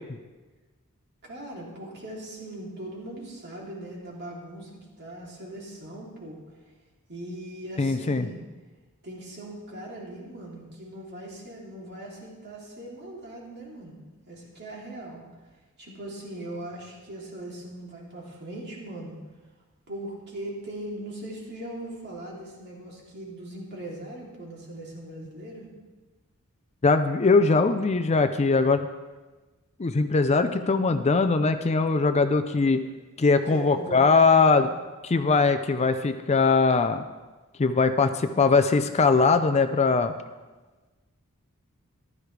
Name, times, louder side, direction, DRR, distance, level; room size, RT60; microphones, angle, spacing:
voice 1, 1.2-4.7 5.0-6.4 7.1-8.4 9.0-14.0 14.3-15.2 15.8-19.2 19.9-25.7 33.5-34.0 34.3-34.7, right 1 dB, 50° right, -3 dB, 3.0 m, -40 dB
voice 2, 7.8-8.3 26.8-28.8 29.8-32.8 33.2-34.7 35.0-37.0 37.6-40.1, left 4 dB, 30° left, 9 dB, 0.5 m, -21 dB
14.5 x 12.0 x 3.3 m, 1.2 s
head